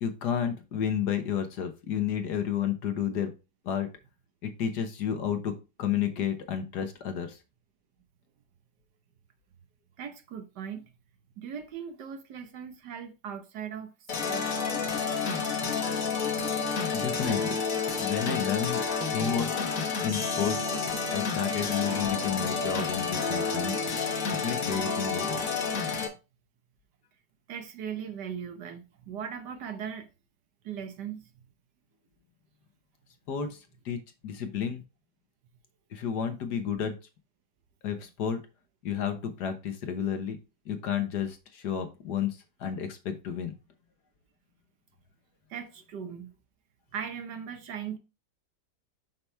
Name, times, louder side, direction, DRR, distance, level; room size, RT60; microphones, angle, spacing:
voice 1, 0.0-3.3 3.6-3.9 4.4-7.4 16.9-17.6 18.0-18.9 19.1-19.5 20.0-20.7 21.1-23.8 24.3-25.4 33.3-33.6 33.8-34.8 35.9-37.0 37.8-38.4 38.8-40.4 40.7-43.5, left 8 dB, 70° left, 1.6 m, -31 dB
voice 2, 10.0-10.9 11.4-13.9 14.3-14.9 15.6-15.9 16.8-16.9 27.5-30.1 30.6-31.5 45.5-46.3 46.9-48.0, right 8 dB, 70° right, 1.6 m, -39 dB
sound 1, 14.1-26.1, left 5 dB, 55° left, 1.5 m, -30 dB
5.9 x 5.8 x 3.3 m
omnidirectional pair, 1.9 m